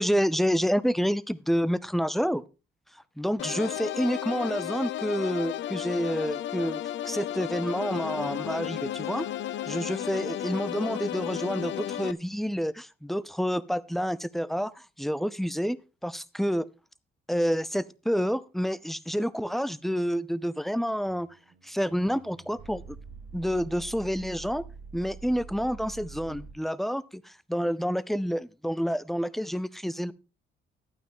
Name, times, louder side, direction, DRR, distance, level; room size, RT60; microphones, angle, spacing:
voice 1, 0.0-2.4 3.2-9.3 9.7-15.8 16.0-16.7 17.3-21.3 21.6-23.0 23.3-24.6 24.9-30.1, equal, ahead, 0.6 m, -28 dB
sound 1, 3.4-12.1, left 12 dB, 70° left, 0.6 m, -33 dB
sound 2, 21.0-26.5, right 5 dB, 85° right, 1.9 m, -46 dB
12.0 x 9.1 x 3.7 m
cardioid pair, 90°, 20 cm